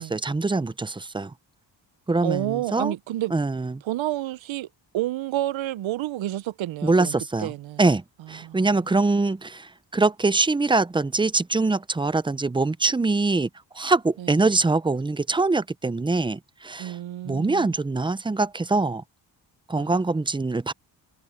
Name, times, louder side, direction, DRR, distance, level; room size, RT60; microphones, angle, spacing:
voice 1, 0.0-1.3 2.1-2.9 3.3-3.8 6.8-7.5 7.8-13.5 13.7-17.0 17.2-19.0 19.7-20.7, right 3 dB, 10° right, 0.5 m, -23 dB
voice 2, 2.2-3.3 3.8-4.7 4.9-7.1 7.4-7.8 8.4-8.7 14.2-14.3 16.8-17.7 19.7-19.9, right 14 dB, 85° right, 0.7 m, -29 dB
cardioid pair, 105°, 45 cm